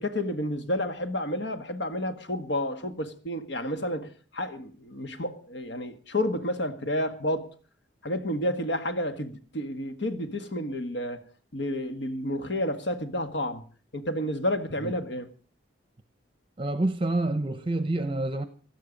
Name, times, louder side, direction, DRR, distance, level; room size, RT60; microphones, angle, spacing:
voice 1, 0.0-7.5 8.0-11.2 11.5-13.6 13.9-15.3, left 1 dB, 65° left, 1.7 m, -30 dB
voice 2, 16.6-18.5, right 2 dB, 25° right, 0.8 m, -27 dB
17.0 x 12.5 x 5.2 m
head